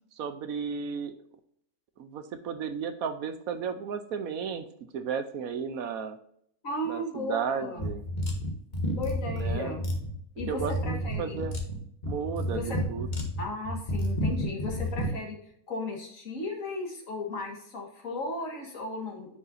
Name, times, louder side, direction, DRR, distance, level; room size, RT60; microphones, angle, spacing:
voice 1, 0.2-1.1 2.0-4.6 4.9-6.2 6.8-8.0 9.4-9.8 10.5-11.6 12.1-13.1, right 6 dB, 70° right, 10 dB, 1.1 m, -34 dB
voice 2, 6.6-7.8 8.9-9.8 10.4-11.4 12.5-12.8 13.4-15.4 15.7-19.4, left 2 dB, 60° left, 1 dB, 2.0 m, -35 dB
sound 1, 7.8-15.1, equal, 30° left, 1.4 m, -31 dB
9.8 x 5.5 x 2.6 m, 0.67 s
omnidirectional pair, 1.6 m